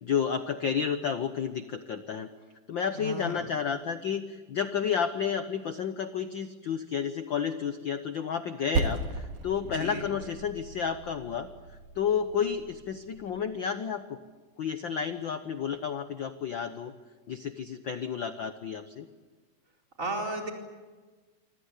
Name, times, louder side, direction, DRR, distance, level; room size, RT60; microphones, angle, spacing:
voice 1, 0.0-2.3 2.7-11.5 11.9-14.2 14.6-16.9 17.3-19.1, left 7 dB, 80° left, 9 dB, 1.0 m, -31 dB
voice 2, 2.9-3.5 9.6-10.0 20.0-20.5, right 1 dB, 25° right, 1 dB, 4.5 m, -34 dB
Percussion, 8.8-13.6, right 3 dB, 75° right, 3.4 m, -36 dB
26.5 x 25.0 x 8.3 m, 1.3 s
omnidirectional pair, 3.6 m